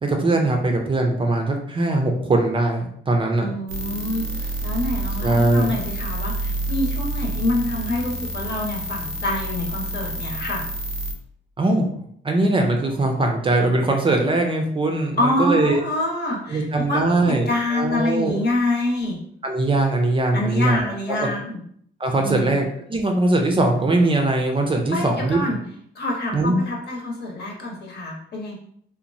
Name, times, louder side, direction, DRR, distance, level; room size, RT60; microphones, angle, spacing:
voice 1, 0.0-3.5 5.2-5.7 11.6-11.9 12.2-15.8 16.5-17.5 17.7-18.4 19.4-20.8 21.2-21.3 22.0-25.4 26.3-26.6, right 2 dB, 25° right, 3 dB, 0.5 m, -21 dB
voice 2, 3.4-10.7 15.2-19.2 20.3-21.6 22.2-22.6 24.9-25.6 25.9-28.5, left 1 dB, 55° left, -1 dB, 1.0 m, -26 dB
sound 1, 3.7-11.1, right 1 dB, 90° right, 0.5 m, -29 dB
2.9 x 2.1 x 2.6 m, 0.65 s
cardioid pair, 90°, 20 cm